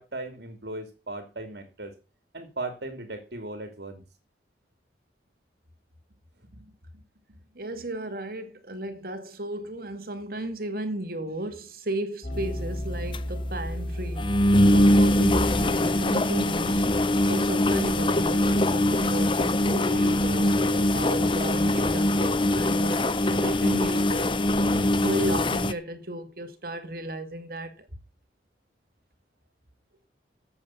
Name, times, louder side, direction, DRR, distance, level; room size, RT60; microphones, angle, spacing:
voice 1, 0.0-2.0 2.3-4.0 6.5-7.0, right 2 dB, 70° right, 2.9 m, -38 dB
voice 2, 7.6-14.3 14.7-16.9 17.2-23.2 23.4-24.4 25.0-27.9, right 1 dB, 55° right, 2.2 m, -34 dB
sound 1, 12.2-18.4 19.2-21.8, equal, 50° left, 3.4 m, -36 dB
sound 2, 12.4-12.5 12.8-12.9 13.1-13.2 13.5-13.7 14.2-25.7, left 1 dB, 30° left, 0.8 m, -22 dB
14.0 x 8.4 x 5.8 m
head